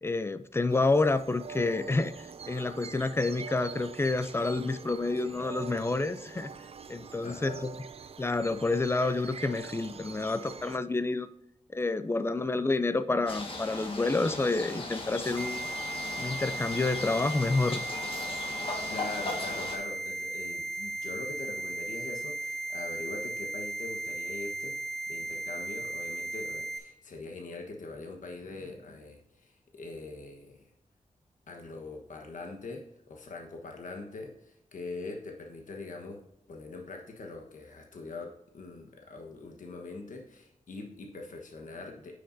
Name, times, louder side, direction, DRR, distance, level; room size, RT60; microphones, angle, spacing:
voice 1, 0.0-6.5 6.9-7.7 8.2-11.3 11.7-15.7 16.2-17.9, left 3 dB, 20° left, 13 dB, 0.4 m, -29 dB
sound 1, 0.7-10.8, right 6 dB, 50° right, 0.5 m, -45 dB
voice 2, 7.2-7.7 18.6-24.8 25.1-30.7 31.5-42.2, left 3 dB, 75° left, 2 dB, 1.2 m, -42 dB
sound 2, 13.3-19.8, left 2 dB, 40° left, 1.5 m, -38 dB
sound 3, 15.4-26.8, right 2 dB, 5° left, 1.3 m, -36 dB
9.3 x 6.6 x 2.6 m, 0.82 s
wide cardioid pair, 135°, 13 cm